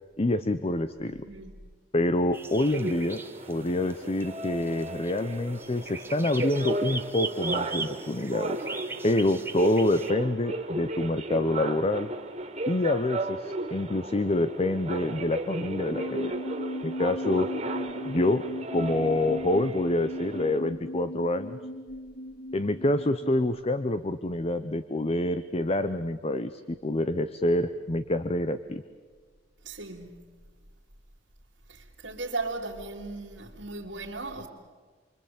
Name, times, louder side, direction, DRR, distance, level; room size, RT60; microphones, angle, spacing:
voice 1, 0.2-1.2 1.9-3.2 3.5-8.6 9.0-12.1 12.7-16.4 16.8-17.5 18.0-18.4 18.7-21.6 22.5-28.8, left 1 dB, 35° left, 0.8 m, -27 dB
voice 2, 1.1-1.6 29.6-30.4 31.7-34.5, right 3 dB, 85° right, 3.0 m, -37 dB
sound 1, 2.3-10.1, right 3 dB, 15° right, 1.2 m, -40 dB
sound 2, 2.6-20.6, right 2 dB, 35° right, 2.3 m, -35 dB
sound 3, 15.9-23.3, equal, 80° left, 2.5 m, -37 dB
28.5 x 24.0 x 8.6 m
head